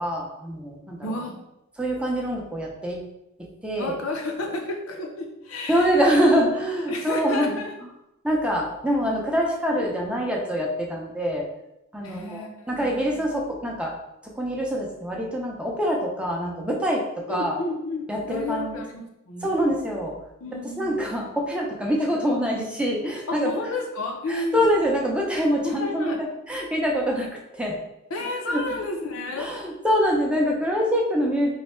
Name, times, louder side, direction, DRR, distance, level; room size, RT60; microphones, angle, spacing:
voice 1, 0.0-1.0 1.8-3.0 3.6-3.9 5.7-7.6 8.2-11.5 11.9-13.9 14.3-17.6 18.1-18.8 19.4-20.1 20.8-23.5 24.3-27.8 28.5-28.6 29.4-31.6, equal, 5° right, -2 dB, 0.5 m, -25 dB
voice 2, 1.0-1.4 3.8-6.0 6.9-7.7 9.7-10.1 12.0-13.2 17.3-19.7 20.4-21.2 21.9-22.1 23.3-24.7 25.6-26.2 28.1-29.5, left 2 dB, 70° left, 1 dB, 0.6 m, -31 dB
3.1 x 2.2 x 4.2 m, 0.88 s
head